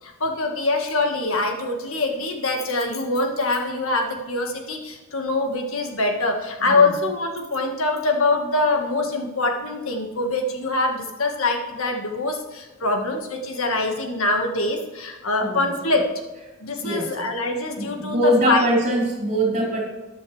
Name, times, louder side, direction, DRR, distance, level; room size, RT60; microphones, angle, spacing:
voice 1, 0.0-16.1 16.6-19.0, left 2 dB, 70° left, 3 dB, 1.6 m, -24 dB
voice 2, 16.8-17.1 17.8-19.8, right 1 dB, 35° right, -3 dB, 4.0 m, -22 dB
14.0 x 10.0 x 3.3 m, 1.2 s
head